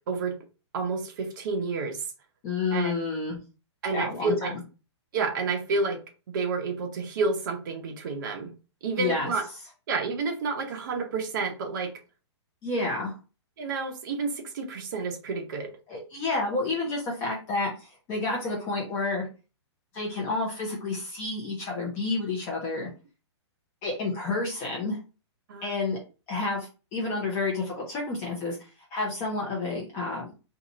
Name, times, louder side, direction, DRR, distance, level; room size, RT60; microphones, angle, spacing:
voice 1, 0.7-2.1 2.7-2.9 3.8-4.5 5.1-6.0 6.3-8.5 8.8-9.4 9.9-11.9 13.6-15.7 25.5-25.7, right 4 dB, 45° right, 0.8 m, -30 dB
voice 2, 2.4-3.4 3.9-4.5 9.0-9.3 12.6-13.1 15.9-19.3 19.9-22.9 23.8-25.0 25.6-26.0 26.3-28.6 28.9-30.3, left 3 dB, 20° left, 0.7 m, -30 dB
2.8 x 2.4 x 3.9 m
hypercardioid pair, 165°, 15 cm